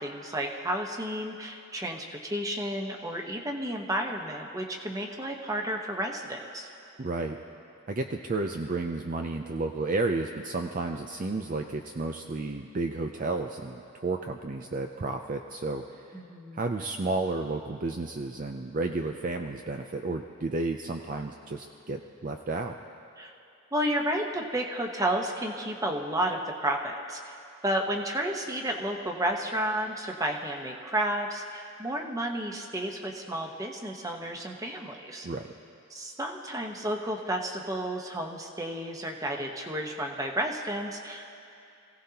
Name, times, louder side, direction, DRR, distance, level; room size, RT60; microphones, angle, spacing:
voice 1, 0.0-6.7 16.1-16.6 23.2-23.3 23.7-27.3 27.6-35.3 35.9-41.3, right 1 dB, 15° right, 2 dB, 1.1 m, -32 dB
voice 2, 7.0-7.4 7.9-16.2 16.5-22.8 35.2-35.5, right 3 dB, 40° right, 4 dB, 0.5 m, -32 dB
27.0 x 16.5 x 2.9 m, 2.7 s
head